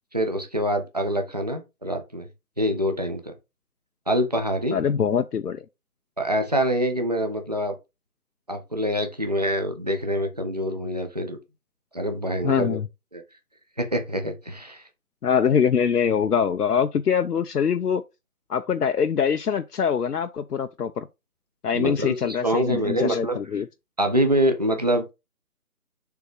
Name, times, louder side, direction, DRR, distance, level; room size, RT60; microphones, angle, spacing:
voice 1, 0.1-2.3 2.6-3.3 4.1-4.8 6.2-7.7 8.5-11.4 11.9-12.8 13.1-13.2 13.8-14.8 21.7-23.4 24.0-25.0, equal, 25° right, 0.8 m, -25 dB
voice 2, 4.7-5.6 12.4-12.9 15.2-18.0 18.5-21.1 21.6-23.7, left 7 dB, 80° left, 0.7 m, -23 dB
6.9 x 3.7 x 4.7 m
figure-of-eight pair, 170°, 46 cm